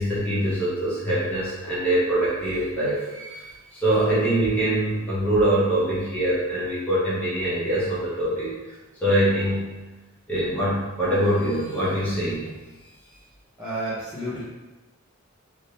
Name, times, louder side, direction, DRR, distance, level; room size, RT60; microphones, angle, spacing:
voice 1, 0.0-8.7 9.0-9.7 10.3-12.5, right 1 dB, 5° left, -10 dB, 1.2 m, -24 dB
voice 2, 13.6-14.4, right 1 dB, 10° right, -12 dB, 0.7 m, -30 dB
3.4 x 2.7 x 2.9 m, 1.1 s
head